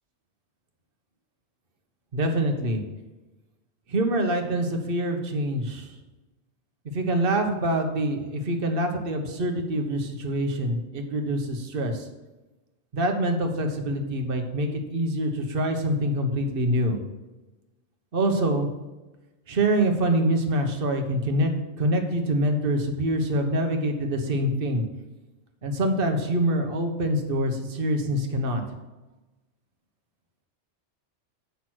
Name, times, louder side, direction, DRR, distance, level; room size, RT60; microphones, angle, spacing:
voice 1, 2.1-2.8 3.9-5.9 6.9-12.1 12.9-17.0 18.1-18.7 19.5-21.5 21.8-24.8 25.6-28.6, right 1 dB, 50° right, 4 dB, 1.3 m, -25 dB
8.4 x 6.1 x 6.1 m, 1.1 s
omnidirectional pair, 1.2 m